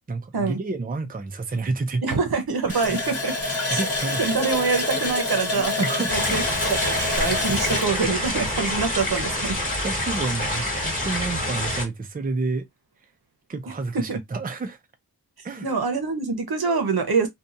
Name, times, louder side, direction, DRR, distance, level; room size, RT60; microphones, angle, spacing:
voice 1, 0.1-2.2 2.7-2.8 3.7-4.2 5.6-6.4 9.8-12.7 13.5-14.8 15.4-15.7, right 3 dB, 25° right, 0.4 m, -29 dB
voice 2, 2.0-3.3 3.7-3.8 4.2-5.7 6.1-9.5 13.7-14.2 15.6-17.3, right 4 dB, 75° right, 0.8 m, -25 dB
Water tap faucet, 2.7-9.2 9.5-9.6 10.1-10.2, left 2 dB, 40° left, 1.1 m, -27 dB
sound 1, 6.1-11.9, left 1 dB, 20° left, 1.4 m, -27 dB
2.8 x 2.3 x 2.5 m
wide cardioid pair, 65°, 38 cm